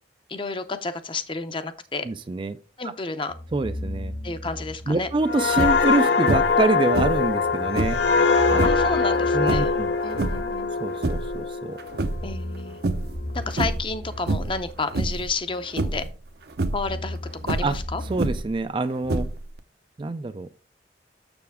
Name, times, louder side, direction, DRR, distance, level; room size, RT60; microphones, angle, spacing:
voice 1, 0.3-2.1 2.8-3.3 4.2-5.1 8.6-9.7 10.0-10.7 12.2-12.8 13.3-16.0 16.7-17.2 17.4-18.0, left 3 dB, 30° left, 0.6 m, -31 dB
voice 2, 2.0-2.6 2.8-2.9 3.5-4.1 4.9-8.0 8.5-8.7 9.3-9.9 10.8-11.8 17.6-17.7 18.1-19.3 20.0-20.5, right 3 dB, 30° right, 0.4 m, -26 dB
sound 1, 3.3-6.2 7.4-11.2 12.0-16.0 16.3-18.2, left 1 dB, 60° left, 1.8 m, -37 dB
sound 2, 5.3-12.7 13.1-13.4, left 4 dB, 75° left, 0.7 m, -23 dB
sound 3, 5.5-5.9 6.3-6.6 6.9-8.1 8.5-8.9 9.4-10.5 10.9-11.4 11.8-12.6 12.8-13.2 13.5-13.9 14.3-14.6 14.9-15.3 15.8-16.1 16.5-16.9 17.4-18.6 19.0-19.6, right 2 dB, 60° right, 0.7 m, -27 dB
6.9 x 6.7 x 3.5 m
head